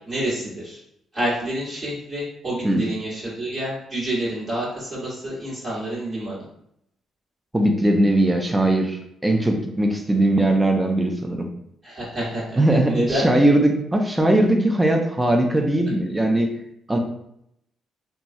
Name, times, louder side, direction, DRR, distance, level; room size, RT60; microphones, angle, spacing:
voice 1, 0.1-0.8 1.1-6.4 11.8-12.6 12.9-13.3, right 1 dB, 35° right, -8 dB, 1.2 m, -28 dB
voice 2, 7.5-9.0 9.2-11.5 12.6-16.5 16.9-17.0, right 1 dB, 15° right, 3 dB, 0.4 m, -19 dB
3.0 x 2.3 x 2.6 m, 0.75 s
cardioid pair, 90°, 0 cm